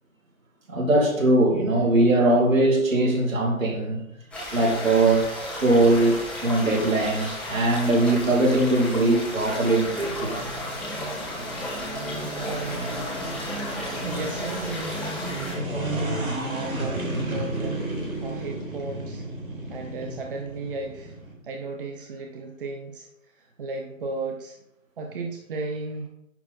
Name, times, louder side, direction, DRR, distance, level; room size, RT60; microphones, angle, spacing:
voice 1, 0.7-4.0 4.5-5.3 5.6-10.4, right 2 dB, 70° right, 0 dB, 2.8 m, -21 dB
sound 1, 4.3-15.5, left 1 dB, 5° left, 1.5 m, -34 dB
sound 2, 10.0-21.3, right 1 dB, 90° right, 3.7 m, -33 dB
voice 2, 12.2-12.8 14.0-19.3 19.7-21.1 21.4-23.1 23.4-24.6 25.0-26.1, right 3 dB, 40° right, 2 dB, 1.0 m, -35 dB
10.5 x 4.2 x 5.4 m, 0.84 s
figure-of-eight pair, 140°, 41 cm